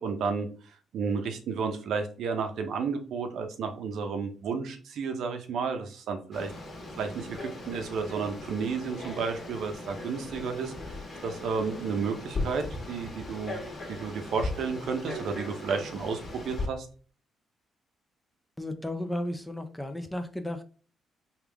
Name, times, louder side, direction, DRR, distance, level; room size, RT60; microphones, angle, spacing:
voice 1, 0.0-6.5 7.0-11.0 11.2-13.6 13.9-16.9, right 5 dB, 70° right, 5 dB, 0.7 m, -32 dB
Frog, 6.3-16.7, left 2 dB, 35° left, 1.3 m, -38 dB
voice 2, 18.6-20.6, left 1 dB, 5° left, 7 dB, 0.5 m, -34 dB
3.5 x 2.4 x 3.4 m, 0.39 s
cardioid pair, 90°, 0 cm